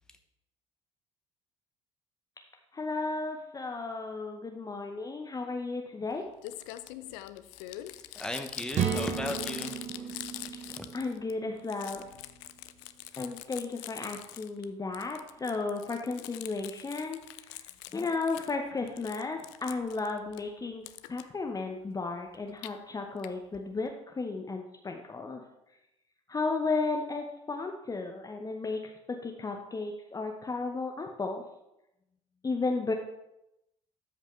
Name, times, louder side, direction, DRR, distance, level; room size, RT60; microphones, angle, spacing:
voice 1, 2.7-6.2 10.9-12.0 13.2-17.2 17.5-17.6 17.9-20.8 21.1-23.9 24.1-25.4 26.3-31.4 32.4-32.9, left 3 dB, 25° left, 3 dB, 0.8 m, -34 dB
Crumpling crinkling, 6.1-6.2 6.4-11.3 11.6-14.6 14.9-18.6 18.9-20.4 20.9-21.2 22.3-22.7 23.2-23.3 23.5-23.6 23.9-24.0, left 15 dB, 65° left, 0.4 m, -44 dB
voice 2, 8.1-10.1 10.5-10.9, left 1 dB, 5° left, 5 dB, 1.1 m, -37 dB
sound 1, 8.7-12.5, right 8 dB, 50° right, 0.9 m, -35 dB
13.0 x 5.2 x 3.2 m, 0.87 s
figure-of-eight pair, 50°, 16 cm